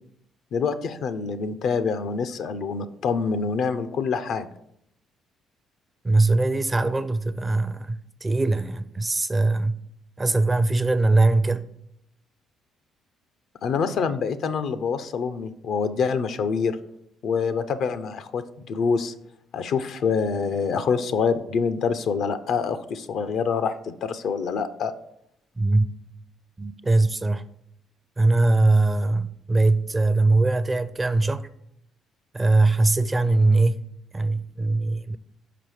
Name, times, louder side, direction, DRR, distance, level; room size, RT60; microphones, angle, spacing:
voice 1, 0.5-4.5 13.6-16.8 17.2-19.1 19.5-24.9, left 5 dB, 65° left, 0.5 m, -26 dB
voice 2, 6.0-9.8 10.2-11.7 25.6-25.9 26.6-27.4 28.2-31.5 32.3-33.9 34.1-35.2, right 2 dB, 25° right, 0.5 m, -21 dB
5.9 x 4.8 x 4.7 m
supercardioid pair, 60°, 0 cm